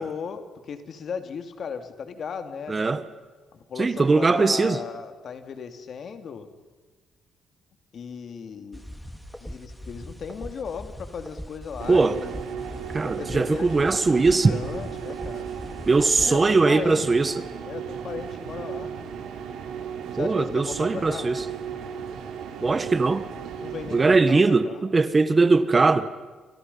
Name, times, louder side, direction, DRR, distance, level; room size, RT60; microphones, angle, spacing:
voice 1, 0.0-2.8 3.5-6.5 7.9-8.8 9.4-12.4 13.0-15.5 16.2-17.1 17.6-19.1 20.1-21.3 23.6-24.8, left 6 dB, 55° left, 2.6 m, -36 dB
voice 2, 2.7-3.0 3.8-4.8 11.9-12.2 12.9-14.5 15.9-17.3 20.2-21.4 22.6-23.3 23.9-26.1, right 3 dB, 30° right, 1.5 m, -20 dB
sound 1, 8.7-16.4, equal, ahead, 2.2 m, -41 dB
sound 2, 11.8-24.2, right 7 dB, 85° right, 3.6 m, -36 dB
29.5 x 25.0 x 5.6 m
cardioid pair, 90°, 0 cm